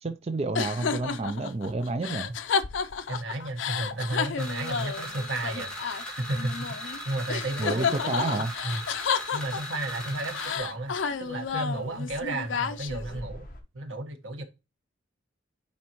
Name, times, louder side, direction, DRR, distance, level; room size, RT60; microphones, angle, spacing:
voice 1, 0.0-2.3 7.6-8.5, right 3 dB, 35° right, 0.4 m, -30 dB
sound 1, 0.5-7.0 7.3-9.9 10.3-13.2, left 6 dB, 80° left, 0.5 m, -31 dB
sound 2, 1.8-13.6, left 1 dB, 45° left, 1.2 m, -53 dB
voice 2, 3.1-8.8 9.3-13.5 13.7-14.4, right 2 dB, 90° right, 1.4 m, -33 dB
sound 3, 4.4-10.6, left 1 dB, 5° left, 1.9 m, -38 dB
9.5 x 4.2 x 3.0 m
head